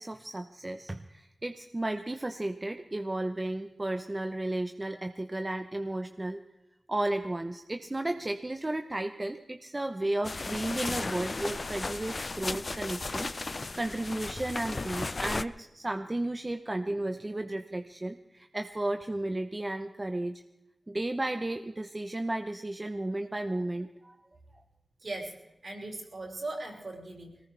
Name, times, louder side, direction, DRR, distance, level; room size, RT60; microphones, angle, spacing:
voice 1, 0.0-6.4 6.9-20.4 20.9-24.2, right 1 dB, 25° right, 6 dB, 0.9 m, -34 dB
sound 1, 10.2-15.4, left 3 dB, 50° left, 0.6 m, -35 dB
voice 2, 25.0-25.3 25.6-27.3, right 2 dB, 65° right, -1 dB, 5.6 m, -38 dB
22.0 x 19.0 x 3.4 m, 0.92 s
wide cardioid pair, 65°, 0 cm